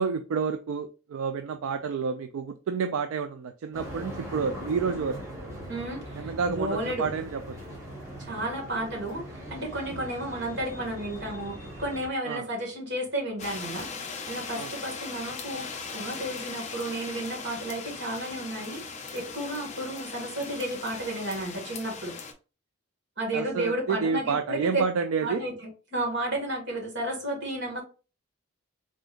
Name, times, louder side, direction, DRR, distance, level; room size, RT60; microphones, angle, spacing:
voice 1, 0.0-5.2 6.1-7.6 9.9-10.0 12.3-12.5 14.5-14.7 23.3-25.4, right 5 dB, 75° right, 0.3 m, -29 dB
sound 1, 3.7-12.1, equal, 15° right, 1.3 m, -40 dB
voice 2, 5.7-7.1 8.2-22.1 23.2-24.8 25.2-27.8, right 1 dB, 55° right, 1.8 m, -33 dB
sound 2, 13.4-22.3, left 4 dB, 35° left, 0.6 m, -39 dB
3.8 x 3.5 x 2.5 m
head